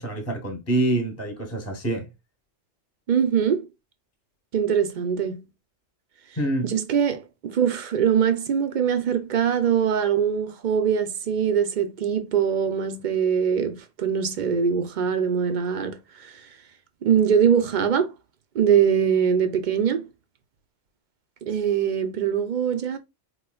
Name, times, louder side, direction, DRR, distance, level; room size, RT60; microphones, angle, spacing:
voice 1, 0.0-2.1 6.4-6.7, right 2 dB, 15° left, 0.9 m, -26 dB
voice 2, 3.1-3.7 4.5-5.4 6.6-16.5 17.0-18.1 18.5-20.1 21.5-23.0, right 7 dB, 55° right, 0.5 m, -22 dB
4.5 x 3.0 x 2.2 m
omnidirectional pair, 1.3 m